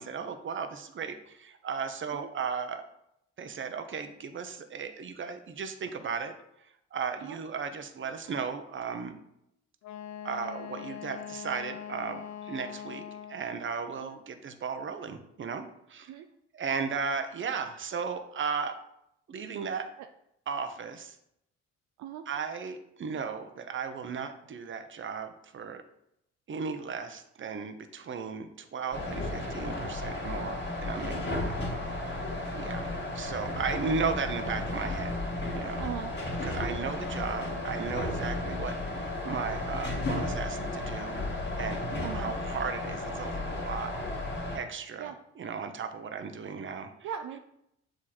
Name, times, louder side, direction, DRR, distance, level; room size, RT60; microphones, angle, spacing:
voice 1, 0.0-2.8 3.4-6.3 6.9-9.2 10.2-13.0 13.3-16.1 16.5-18.8 19.3-19.9 20.5-21.2 22.3-25.8 26.5-31.6 32.0-32.2 32.5-35.2 35.4-35.9 36.4-41.2 41.6-44.0 44.5-46.9, right 5 dB, 40° right, 8 dB, 0.8 m, -36 dB
Wind instrument woodwind instrument, 9.8-13.6, left 9 dB, 65° left, 0.5 m, -42 dB
sound 1, 28.9-44.6, left 2 dB, 35° left, 1.9 m, -34 dB
voice 2, 35.8-36.1 42.0-42.3 45.0-45.2 47.0-47.4, right 9 dB, 65° right, 6 dB, 0.5 m, -38 dB
7.5 x 3.1 x 4.2 m, 0.78 s
supercardioid pair, 60°, 31 cm